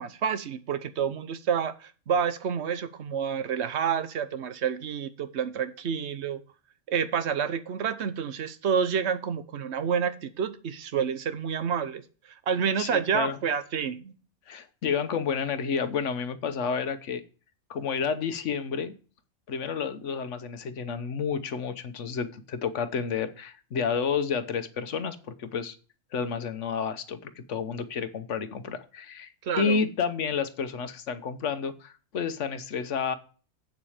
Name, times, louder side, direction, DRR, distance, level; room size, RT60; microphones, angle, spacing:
voice 1, 0.0-6.4 6.9-12.0 12.3-14.1 29.4-29.8, right 7 dB, 65° right, 1.1 m, -29 dB
voice 2, 12.8-13.4 14.5-17.2 17.7-18.9 19.5-25.8 26.1-29.3 29.6-33.2, left 6 dB, 75° left, 1.3 m, -30 dB
8.2 x 7.2 x 4.9 m
omnidirectional pair, 1.3 m